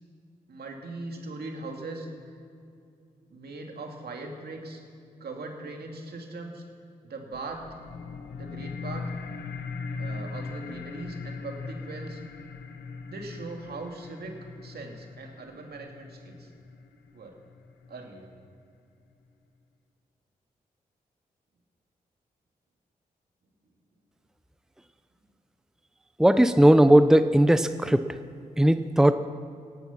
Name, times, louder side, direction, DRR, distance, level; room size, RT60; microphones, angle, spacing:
voice 1, 0.5-2.4 3.3-4.8 5.2-6.6 7.0-7.7 8.3-9.1 10.0-12.2 13.1-16.5 17.1-17.4 17.9-18.3, right 2 dB, 70° right, 2 dB, 2.4 m, -40 dB
sound 1, 7.3-18.3, left 4 dB, 80° left, 1.0 m, -39 dB
voice 2, 26.2-28.1 28.6-29.1, right 1 dB, 5° right, 11 dB, 0.7 m, -18 dB
18.0 x 11.0 x 5.9 m, 2.5 s
supercardioid pair, 40°, 17 cm